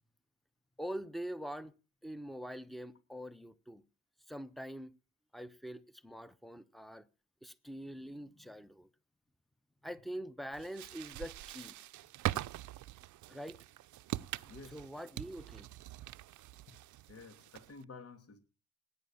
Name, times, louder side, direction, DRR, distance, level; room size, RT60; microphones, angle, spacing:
voice 1, 0.8-1.7 2.0-3.8 4.3-4.9 5.3-7.1 7.4-8.9 9.8-11.8 13.3-13.6 14.7-15.7, equal, ahead, 1.1 m, -44 dB
sound 1, 10.5-17.8, right 15 dB, 75° right, 0.7 m, -43 dB
voice 2, 14.4-14.9 16.7-16.8 17.1-18.4, left 4 dB, 50° left, 2.8 m, -52 dB
18.5 x 9.7 x 7.3 m
cardioid pair, 90°, 30 cm